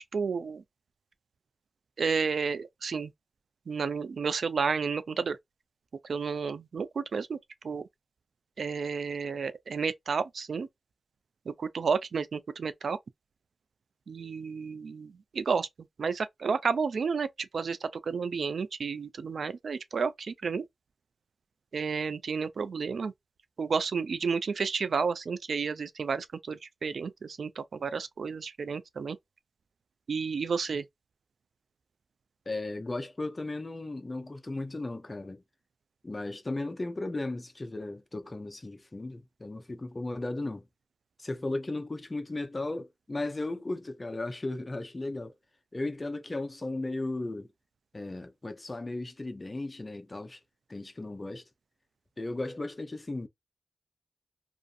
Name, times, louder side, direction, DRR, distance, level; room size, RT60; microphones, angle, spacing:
voice 1, 0.1-0.6 2.0-3.1 3.7-5.4 6.0-7.4 7.6-7.8 8.6-10.7 11.5-13.0 14.1-15.7 16.0-20.6 21.7-23.1 23.6-29.2 30.1-30.9, right 5 dB, 70° right, 0.3 m, -31 dB
voice 2, 32.5-35.4 36.0-40.7 41.2-45.3 45.7-47.5 47.9-50.4 50.7-51.4 52.2-53.3, left 2 dB, 30° left, 0.5 m, -36 dB
2.5 x 2.4 x 2.4 m
cardioid pair, 65°, 0 cm